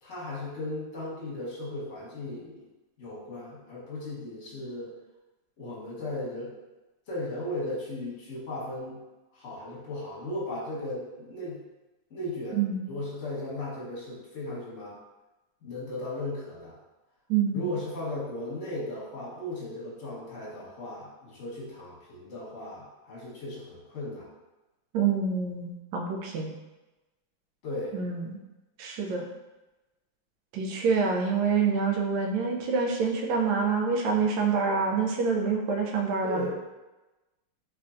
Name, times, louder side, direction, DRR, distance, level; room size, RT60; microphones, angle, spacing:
voice 1, 0.0-2.7 3.0-4.9 5.6-6.5 7.1-9.0 9.3-11.6 12.1-15.0 15.6-16.8 17.5-24.3 27.6-28.0 36.2-36.5, left 1 dB, 40° left, -7 dB, 1.2 m, -36 dB
voice 2, 24.9-26.5 27.9-28.4 28.8-29.2 30.5-36.5, right 5 dB, 75° right, 1 dB, 1.2 m, -26 dB
3.6 x 3.2 x 2.5 m, 1.1 s
omnidirectional pair, 2.3 m